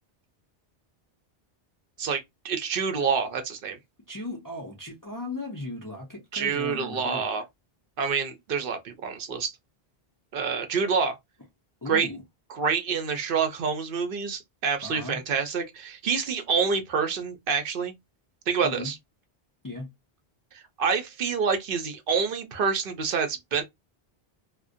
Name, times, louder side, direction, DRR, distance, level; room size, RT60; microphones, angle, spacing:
voice 1, 2.0-3.8 6.3-7.4 8.0-9.5 10.3-11.2 11.9-12.1 12.5-17.9 18.5-19.0 20.5-23.6, right 6 dB, 65° right, 0.7 m, -27 dB
voice 2, 4.1-7.2 11.8-12.2 14.8-15.2 18.6-18.9 19.6-19.9, left 2 dB, 30° left, 0.4 m, -36 dB
2.5 x 2.1 x 2.4 m
omnidirectional pair, 1.0 m